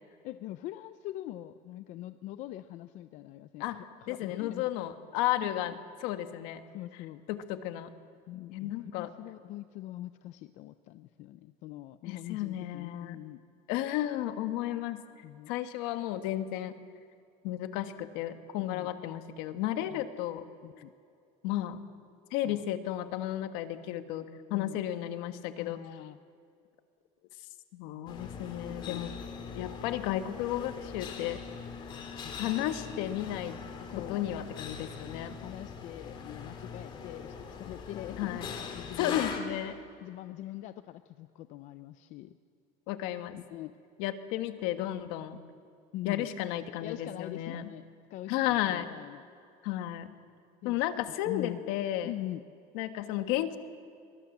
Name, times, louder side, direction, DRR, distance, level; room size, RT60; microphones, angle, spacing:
voice 1, 0.2-4.7 5.4-5.5 6.7-7.2 8.3-13.4 15.2-15.5 18.6-18.9 19.9-20.0 20.6-20.9 22.5-22.6 24.5-24.8 25.6-26.2 28.3-29.0 32.2-33.2 33.9-34.3 35.4-38.4 38.7-39.3 40.0-42.4 43.5-43.8 45.9-46.3 46.8-47.8 48.1-49.2 50.6-50.8 51.2-51.6 52.0-52.4, left 14 dB, 50° left, 11 dB, 0.6 m, -43 dB
voice 2, 3.6-5.7 6.0-6.6 7.3-7.9 8.5-9.1 12.0-13.2 13.7-15.0 15.5-16.8 17.4-20.4 21.4-21.8 22.3-25.8 27.7-29.1 29.5-31.4 32.3-33.6 34.0-35.4 38.2-38.5 39.0-39.8 42.9-43.4 44.0-45.4 46.0-47.7 48.3-48.9 49.6-50.1 50.6-52.1 52.7-53.6, left 13 dB, 70° left, 9 dB, 1.6 m, -33 dB
sound 1, 28.1-39.4, left 6 dB, 30° left, 2.5 m, -41 dB
24.5 x 23.5 x 7.3 m, 2.4 s
cardioid pair, 180°, 16 cm